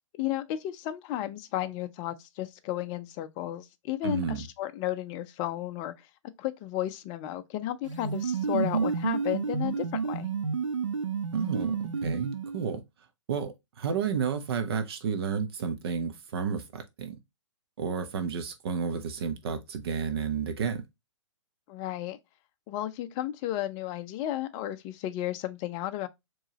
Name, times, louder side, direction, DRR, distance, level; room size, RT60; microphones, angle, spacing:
voice 1, 0.1-6.1 6.4-10.3 21.7-22.2 22.7-26.1, left 13 dB, 30° left, 0.5 m, -33 dB
voice 2, 4.0-4.4 11.3-12.8 13.3-17.2 17.8-20.8, right 6 dB, 55° right, 0.8 m, -31 dB
sound 1, 7.9-12.8, right 5 dB, 85° right, 0.6 m, -30 dB
4.6 x 3.1 x 2.9 m
hypercardioid pair, 125°, 16 cm